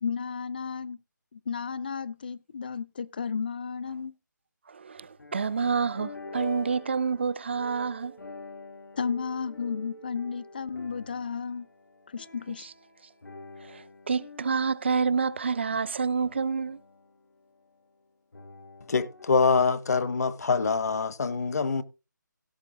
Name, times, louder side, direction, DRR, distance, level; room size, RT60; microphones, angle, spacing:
voice 1, 0.0-1.0 1.3-4.1 9.0-11.7 12.1-12.7, left 6 dB, 30° left, 0.4 m, -33 dB
voice 2, 4.7-8.2 13.7-16.8, right 5 dB, 35° right, 0.4 m, -28 dB
sound 1, 5.0-17.8 18.3-19.4, left 2 dB, 80° left, 3.3 m, -47 dB
voice 3, 18.9-21.8, left 4 dB, 55° left, 1.0 m, -25 dB
17.0 x 6.6 x 3.8 m
figure-of-eight pair, 165°, 10 cm